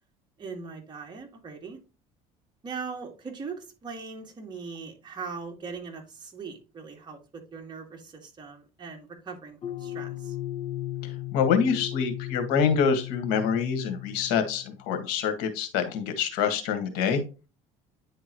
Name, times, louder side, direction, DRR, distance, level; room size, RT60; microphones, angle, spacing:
voice 1, 0.4-1.8 2.6-10.4, right 5 dB, 30° right, 2 dB, 2.0 m, -40 dB
sound 1, 9.6-14.8, left 14 dB, 40° left, 0.7 m, -36 dB
voice 2, 11.0-17.2, left 6 dB, 90° left, 8 dB, 1.6 m, -26 dB
9.8 x 3.8 x 3.0 m, 0.31 s
cardioid pair, 120°, 15 cm